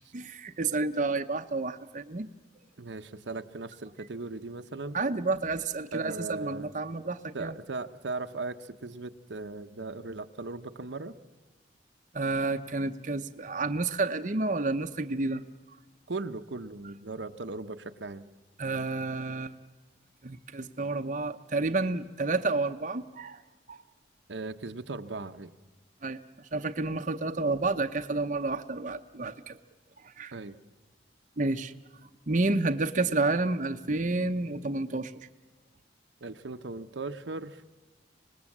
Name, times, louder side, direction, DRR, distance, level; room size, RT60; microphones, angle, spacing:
voice 1, 0.1-2.3 4.9-7.6 12.1-15.4 18.6-19.5 20.2-23.4 23.7-23.8 26.0-29.6 30.0-30.4 31.4-31.7 32.0-35.1, right 3 dB, 45° right, 7 dB, 0.8 m, -30 dB
voice 2, 2.8-5.0 5.9-6.7 7.3-11.1 16.1-18.3 24.3-25.5 30.3-30.6 36.2-37.6, right 3 dB, 80° right, 8 dB, 0.9 m, -38 dB
26.0 x 19.5 x 7.3 m, 1.2 s
head